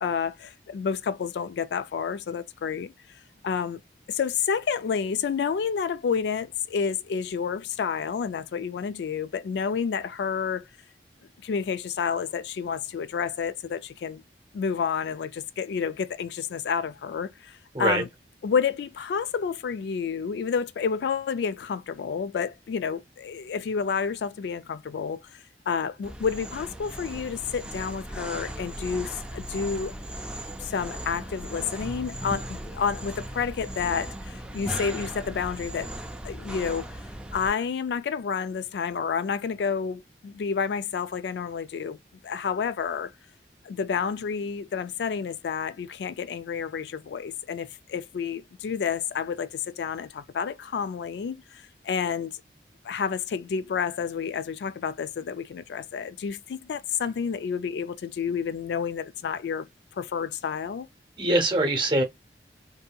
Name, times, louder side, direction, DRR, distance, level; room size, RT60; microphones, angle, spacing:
voice 1, 0.0-2.9 3.4-3.8 4.1-10.7 11.4-14.2 14.5-18.1 18.4-25.2 25.7-29.9 30.6-35.9 36.2-37.0 37.3-42.0 42.2-43.1 43.6-52.3 52.8-59.7 60.0-60.9, left 6 dB, 75° left, 0.3 m, -30 dB
sound 1, 26.0-37.5, right 1 dB, 5° right, 0.3 m, -37 dB
voice 2, 61.2-62.0, right 2 dB, 25° right, 0.8 m, -23 dB
2.7 x 2.6 x 2.2 m
head